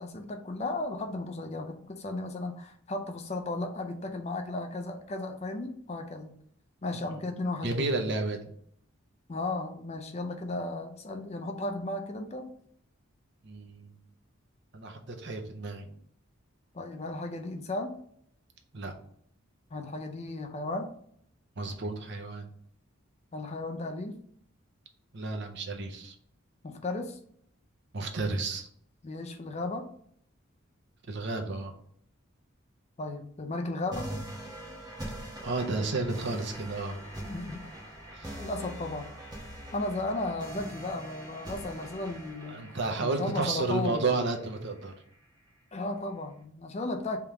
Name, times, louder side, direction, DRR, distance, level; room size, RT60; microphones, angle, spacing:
voice 1, 0.0-6.4 6.8-7.9 9.3-12.5 16.7-17.9 19.7-20.9 23.3-24.2 26.6-27.2 29.0-29.9 33.0-34.1 37.2-37.7 38.3-39.1 39.7-42.7 43.0-44.1 45.7-47.2, left 2 dB, 30° left, 5 dB, 0.4 m, -35 dB
voice 2, 7.6-8.5 13.4-14.0 14.7-16.0 18.7-19.0 21.6-22.5 25.1-26.2 27.9-28.7 31.1-31.7 35.4-37.0 38.1-38.4 42.5-44.9, right 3 dB, 55° right, 4 dB, 0.7 m, -32 dB
sound 1, 33.9-44.9, right 1 dB, 20° right, 0.9 m, -43 dB
3.5 x 2.9 x 4.7 m, 0.65 s
head